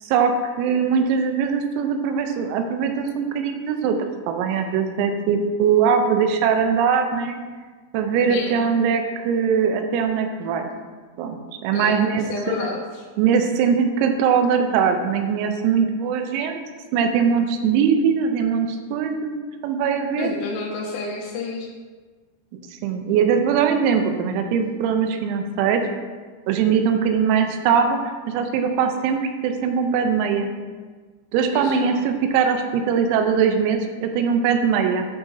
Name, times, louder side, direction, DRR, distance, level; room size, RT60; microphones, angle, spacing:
voice 1, 0.0-7.4 7.9-10.7 11.2-12.5 13.2-16.6 16.9-19.4 19.6-20.3 22.8-25.8 26.5-28.0 28.3-30.5 31.3-35.1, right 6 dB, 85° right, 5 dB, 3.4 m, -21 dB
voice 2, 8.3-8.7 11.7-13.1 20.2-21.7 31.5-32.0, left 3 dB, 80° left, -3 dB, 3.5 m, -30 dB
11.0 x 6.3 x 2.7 m, 1.4 s
omnidirectional pair, 6.0 m